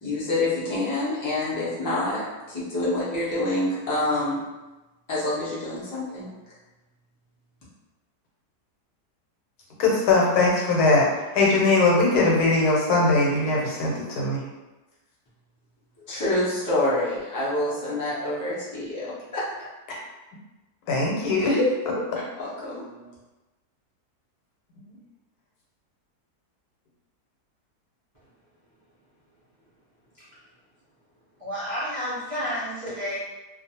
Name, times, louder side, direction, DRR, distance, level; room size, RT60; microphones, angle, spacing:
voice 1, 0.0-4.4 5.1-6.3 16.0-19.7 21.4-21.7 22.4-23.1, left 2 dB, 20° left, -9 dB, 0.4 m, -27 dB
voice 2, 9.8-11.1 11.3-14.4 20.9-21.6, left 3 dB, 75° left, -3 dB, 1.2 m, -20 dB
voice 3, 31.4-33.2, equal, 45° right, -11 dB, 0.4 m, -30 dB
2.5 x 2.3 x 2.7 m, 1.1 s
omnidirectional pair, 1.7 m